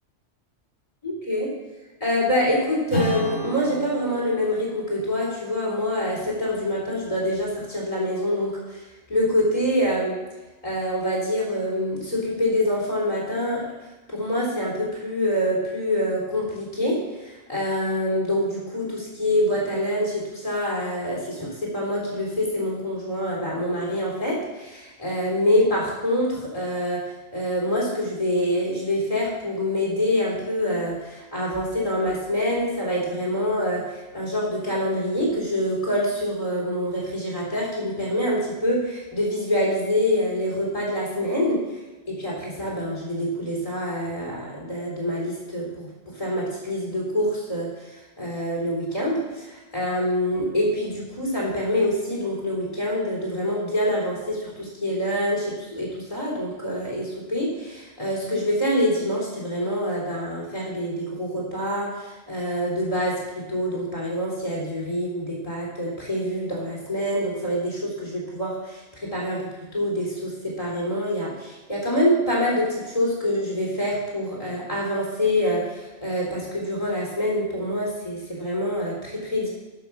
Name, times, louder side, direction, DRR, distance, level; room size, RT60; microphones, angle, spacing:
voice 1, 1.0-1.5 2.0-10.2 10.6-13.7 14.1-27.0 27.3-41.6 42.1-45.9 46.2-47.9 48.2-79.5, equal, 30° left, -4 dB, 4.0 m, -26 dB
Strum, 2.9-7.8, right 1 dB, 55° left, 5.2 m, -34 dB
11.5 x 7.1 x 6.3 m, 1.1 s
omnidirectional pair, 1.2 m